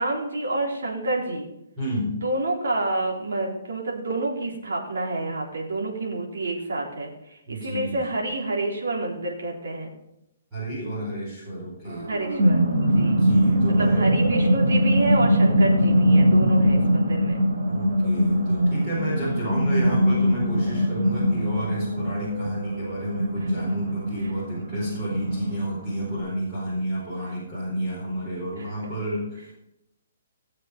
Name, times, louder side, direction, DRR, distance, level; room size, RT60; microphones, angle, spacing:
voice 1, 0.0-1.5 2.1-9.9 12.1-13.2 13.7-17.4 23.6-23.7 28.6-28.7, right 2 dB, 90° right, -1 dB, 4.0 m, -28 dB
voice 2, 1.8-2.2 7.5-8.0 10.5-12.1 13.0-14.1 17.7-29.5, equal, 10° right, -8 dB, 4.6 m, -30 dB
sound 1, 11.9-26.2, equal, 65° right, 3.3 m, -22 dB
17.0 x 7.5 x 5.2 m, 0.84 s
hypercardioid pair, 170°, 0 cm